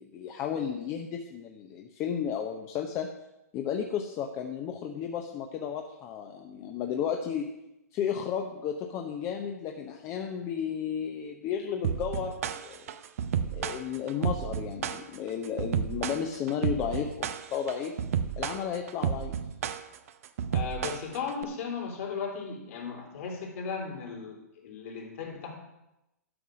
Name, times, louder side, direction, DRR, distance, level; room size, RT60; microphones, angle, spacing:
voice 1, 0.0-3.1 3.5-7.5 7.9-12.8 13.5-18.0 18.4-19.3, left 8 dB, 30° left, 3 dB, 0.9 m, -33 dB
sound 1, 11.8-21.4, right 8 dB, 60° right, 0.7 m, -31 dB
voice 2, 20.5-25.5, left 6 dB, 55° left, 0 dB, 3.4 m, -36 dB
11.5 x 5.6 x 6.3 m, 0.92 s
hypercardioid pair, 115°, 9 cm